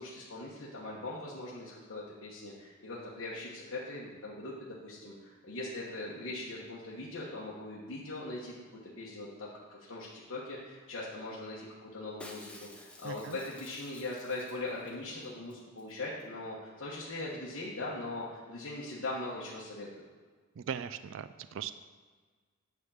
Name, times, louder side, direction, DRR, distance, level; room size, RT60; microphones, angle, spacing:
voice 1, 0.0-8.5 9.0-20.0, left 2 dB, 65° left, -7 dB, 1.3 m, -41 dB
Shatter, 12.2-14.9 15.2-15.3 15.5-15.9 16.2-16.3, left 1 dB, 5° left, 0.6 m, -52 dB
voice 2, 13.0-13.4 20.6-21.7, right 7 dB, 65° right, 12 dB, 0.3 m, -39 dB
9.5 x 3.7 x 7.1 m, 1.5 s
head